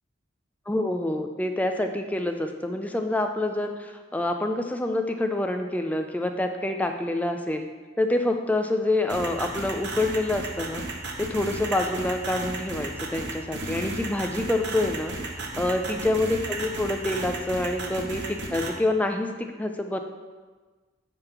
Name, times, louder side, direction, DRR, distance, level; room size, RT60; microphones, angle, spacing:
voice 1, 0.7-7.7 8.0-10.8 11.2-15.1 15.6-20.0, left 1 dB, 10° left, 5 dB, 0.4 m, -27 dB
sound 1, 9.1-18.7, right 2 dB, 60° right, 1.0 m, -33 dB
9.1 x 3.6 x 5.8 m, 1.4 s
head